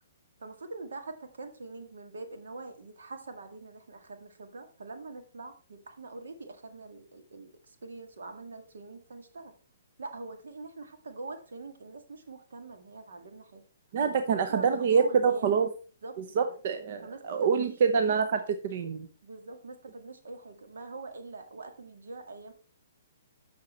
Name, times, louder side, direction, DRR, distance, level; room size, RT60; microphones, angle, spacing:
voice 1, 0.4-9.5 10.0-13.6 14.0-15.5 16.0-16.5 17.0-17.7 18.0-18.4 19.2-22.5, right 3 dB, 85° right, 6 dB, 1.9 m, -44 dB
voice 2, 13.9-15.7 16.4-19.1, right 6 dB, 50° right, 8 dB, 0.8 m, -26 dB
8.3 x 6.4 x 4.3 m, 0.37 s
hypercardioid pair, 155°, 0 cm